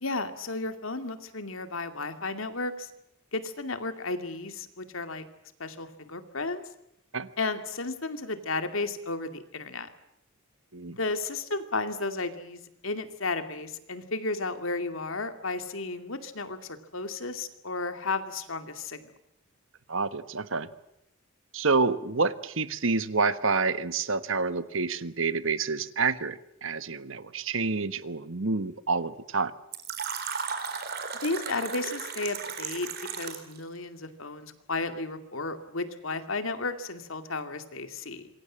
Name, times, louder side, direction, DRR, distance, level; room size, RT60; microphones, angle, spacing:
voice 1, 0.0-2.9 3.3-5.2 5.6-6.6 7.4-9.9 11.0-19.0 31.2-32.9 33.2-38.3, left 3 dB, 70° left, 9 dB, 2.4 m, -33 dB
voice 2, 19.9-20.7 21.5-29.5, right 4 dB, 65° right, 13 dB, 1.4 m, -28 dB
Fill (with liquid), 29.7-33.6, right 6 dB, 50° right, 4.1 m, -35 dB
26.5 x 23.0 x 7.5 m, 0.80 s
head